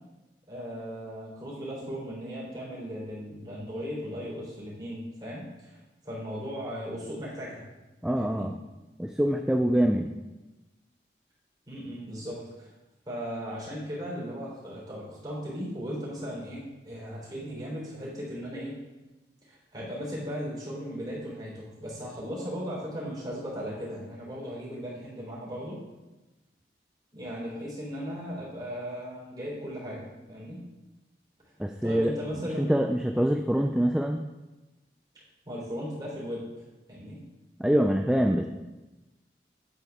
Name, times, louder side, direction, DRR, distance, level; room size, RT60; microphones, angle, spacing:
voice 1, 0.5-7.7 8.2-8.5 11.7-12.7 13.1-18.8 19.5-25.8 27.1-30.6 31.8-32.7 35.5-36.5 36.9-37.2, equal, 25° right, -6 dB, 3.5 m, -37 dB
voice 2, 8.0-8.5 9.0-10.1 31.6-32.2 32.6-34.3 37.6-38.5, equal, 5° right, 4 dB, 0.3 m, -25 dB
9.9 x 8.1 x 3.5 m, 1.1 s
head